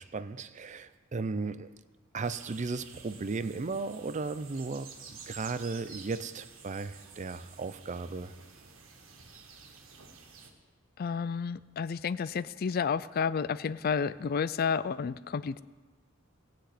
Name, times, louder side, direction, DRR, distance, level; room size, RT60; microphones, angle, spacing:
voice 1, 0.0-1.7 2.1-8.3, right 4 dB, 35° right, 0.5 m, -36 dB
sound 1, 2.2-10.5, right 5 dB, 85° right, 1.7 m, -51 dB
voice 2, 11.0-15.6, left 6 dB, 45° left, 0.4 m, -31 dB
18.0 x 6.0 x 8.3 m
head